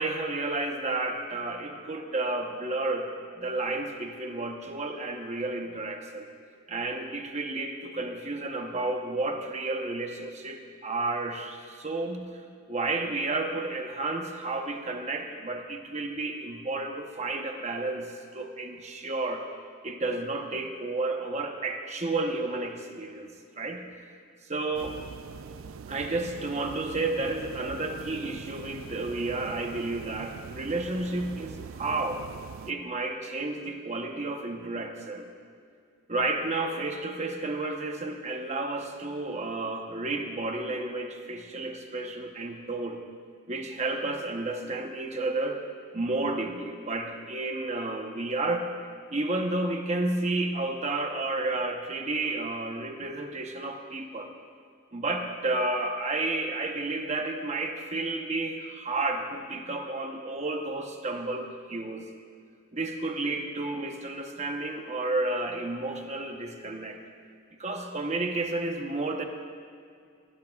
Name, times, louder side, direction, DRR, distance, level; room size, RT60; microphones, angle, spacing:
voice 1, 0.0-3.1 3.4-6.3 6.7-12.3 12.7-19.5 19.8-23.9 24.5-25.0 25.9-32.3 32.7-35.3 36.1-43.0 43.5-45.6 45.9-48.7 49.1-54.3 54.9-62.0 62.7-67.0 67.6-69.2, right 2 dB, 35° right, 4 dB, 1.0 m, -31 dB
sound 1, 24.7-32.7, right 6 dB, 80° right, 0.4 m, -43 dB
20.0 x 16.5 x 2.4 m, 2.3 s
head